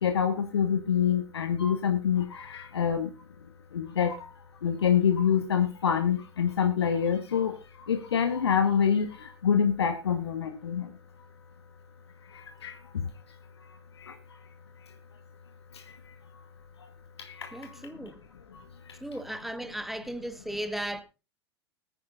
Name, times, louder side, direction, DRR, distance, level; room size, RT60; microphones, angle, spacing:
voice 1, 0.0-3.1 3.7-4.3 4.6-7.5 7.9-9.1 9.4-10.9 12.6-12.7 17.4-17.7, left 7 dB, 70° left, 1.3 m, -26 dB
voice 2, 17.5-18.2 19.0-21.0, right 1 dB, ahead, 1.2 m, -36 dB
21.5 x 9.7 x 2.5 m
figure-of-eight pair, 90°, 14 cm